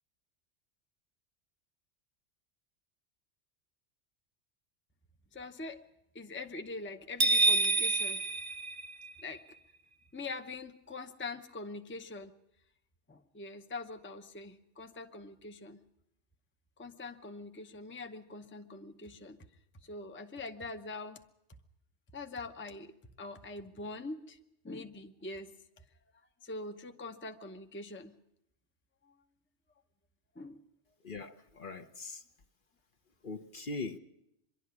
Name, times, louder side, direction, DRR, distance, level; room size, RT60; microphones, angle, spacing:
voice 1, 5.3-5.8 6.1-8.2 9.2-9.4 10.1-12.3 13.1-15.8 16.8-19.4 19.8-21.2 22.1-22.9 23.2-24.4 24.6-25.5 26.4-28.2 30.4-30.6, left 3 dB, 10° left, 0.8 m, -43 dB
sound 1, 7.2-9.4, right 2 dB, 50° right, 1.1 m, -28 dB
voice 2, 31.0-32.2 33.2-34.0, left 3 dB, 50° left, 1.0 m, -41 dB
24.0 x 11.5 x 9.6 m
omnidirectional pair, 1.2 m